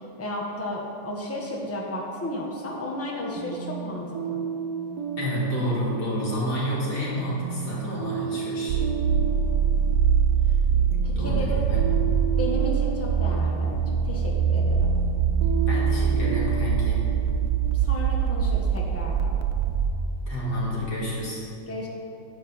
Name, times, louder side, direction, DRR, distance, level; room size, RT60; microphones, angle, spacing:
voice 1, 0.2-4.4 11.0-11.7 12.4-14.9 17.7-19.3 21.7-21.9, left 1 dB, 10° left, -2 dB, 1.1 m, -33 dB
sound 1, 3.4-19.0, right 6 dB, 85° right, 1.5 m, -34 dB
voice 2, 5.2-8.8 11.2-12.1 15.7-17.0 20.3-21.4, equal, 90° left, -7 dB, 2.9 m, -29 dB
sound 2, 8.7-19.9, right 7 dB, 65° right, 0.9 m, -23 dB
10.5 x 4.6 x 7.2 m, 2.6 s
omnidirectional pair, 1.7 m